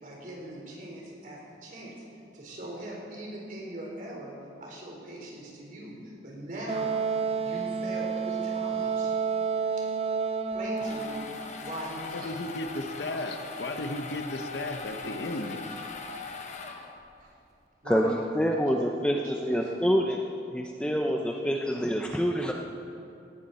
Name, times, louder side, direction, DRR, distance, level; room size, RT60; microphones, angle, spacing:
voice 1, 0.0-1.9 2.3-4.3 4.6-6.9 7.4-9.6 10.5-12.3 13.0-13.5 17.2-17.3 17.8-18.4 18.7-19.0 19.4-19.7 20.8-21.0, right 1 dB, 50° right, -3 dB, 4.3 m, -41 dB
Wind instrument woodwind instrument, 6.7-11.4, right 5 dB, 35° right, 0.5 m, -30 dB
sound 1, 10.5-17.2, left 4 dB, 40° left, 1.2 m, -40 dB
voice 2, 12.2-15.7, left 1 dB, 75° left, 6 dB, 1.1 m, -34 dB
voice 3, 17.9-20.2 20.5-22.5, equal, 5° left, 1 dB, 0.7 m, -26 dB
18.0 x 14.5 x 4.3 m, 2.7 s
head